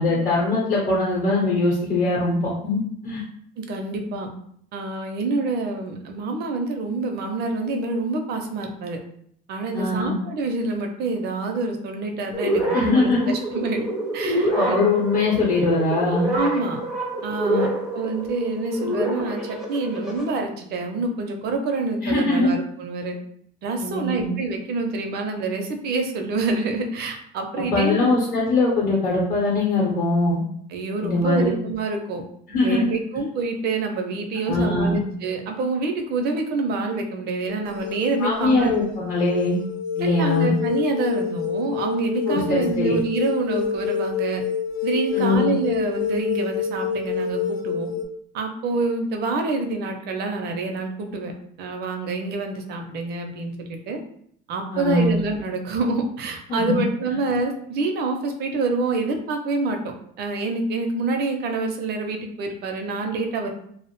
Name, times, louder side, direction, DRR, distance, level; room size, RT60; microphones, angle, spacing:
voice 1, 0.0-3.2 9.7-10.1 12.7-13.2 14.5-16.3 17.4-17.6 22.0-22.5 23.8-24.3 27.6-30.4 31.0-31.5 32.5-32.9 34.5-35.0 38.2-39.6 40.0-40.5 42.3-42.9 45.1-45.5 54.7-55.1 56.5-56.8, left 2 dB, 40° left, -4 dB, 0.8 m, -22 dB
voice 2, 3.6-4.3 4.7-9.0 9.5-13.8 14.1-14.8 16.3-16.8 17.2-17.7 17.9-23.2 23.6-28.1 30.7-32.2 32.6-38.7 40.0-44.4 44.8-47.9 48.3-51.3 51.6-54.0 54.5-59.8 60.2-63.5, right 3 dB, 55° right, 4 dB, 0.5 m, -27 dB
sound 1, 12.3-20.3, right 1 dB, ahead, 0.5 m, -27 dB
sound 2, 37.5-48.1, left 6 dB, 75° left, 0.4 m, -27 dB
2.5 x 2.0 x 2.9 m, 0.67 s
cardioid pair, 120°, 20 cm